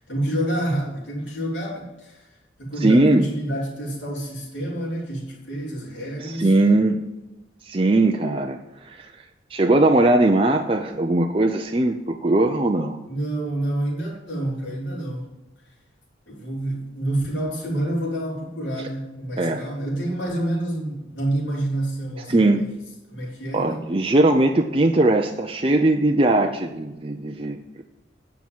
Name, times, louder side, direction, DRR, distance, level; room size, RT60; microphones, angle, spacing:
voice 1, 0.0-2.3 2.6-6.5 13.1-15.3 16.3-22.6 23.1-23.8, right 1 dB, 80° left, -3 dB, 4.1 m, -28 dB
voice 2, 2.8-3.3 6.2-7.1 7.6-8.6 8.9-9.1 9.5-13.0 18.8-18.9 19.4-19.6 22.3-22.6 23.5-27.6, right 2 dB, 30° right, 3 dB, 0.6 m, -19 dB
9.8 x 5.9 x 7.3 m, 1.0 s
head